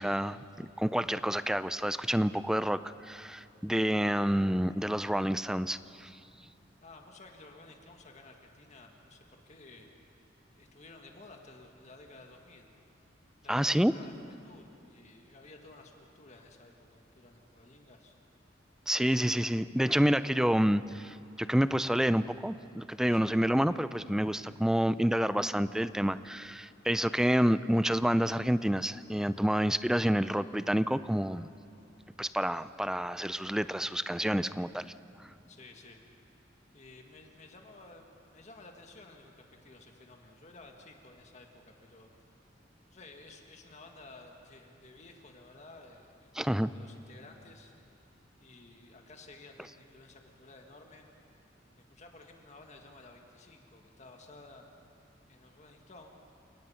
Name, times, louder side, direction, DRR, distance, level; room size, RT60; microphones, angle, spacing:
voice 1, 0.0-6.1 13.5-13.9 18.9-31.5 32.2-34.9 46.4-46.7, equal, 5° right, 14 dB, 0.4 m, -28 dB
voice 2, 6.8-9.9 10.6-12.7 13.4-18.2 23.1-23.4 35.5-36.0 36.7-42.1 42.9-48.0 48.4-51.0 51.8-54.7 55.3-56.1, left 2 dB, 40° left, 3 dB, 1.8 m, -54 dB
29.5 x 19.0 x 5.7 m, 2.7 s
head